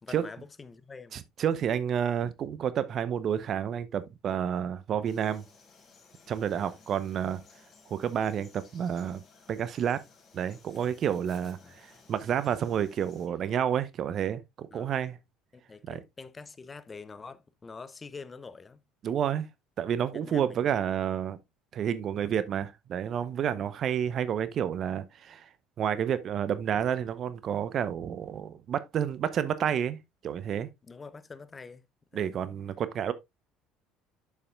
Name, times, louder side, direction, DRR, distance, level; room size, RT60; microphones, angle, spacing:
voice 1, 0.0-1.2 6.5-6.8 11.6-11.7 13.3-13.4 14.7-14.9 15.5-18.8 20.1-20.9 23.5-23.7 30.8-31.9 32.1-32.4, left 4 dB, 25° left, 0.8 m, -46 dB
voice 2, 1.1-5.4 6.3-7.4 7.9-9.2 9.5-10.0 10.3-15.2 15.9-16.0 19.0-19.5 19.8-21.4 21.7-25.5 25.8-30.0 30.2-30.7 32.1-33.1, right 9 dB, 50° right, 0.8 m, -30 dB
Frog, 5.0-13.3, left 4 dB, 45° left, 4.5 m, -58 dB
8.5 x 7.0 x 2.4 m
hypercardioid pair, 65°, 0 cm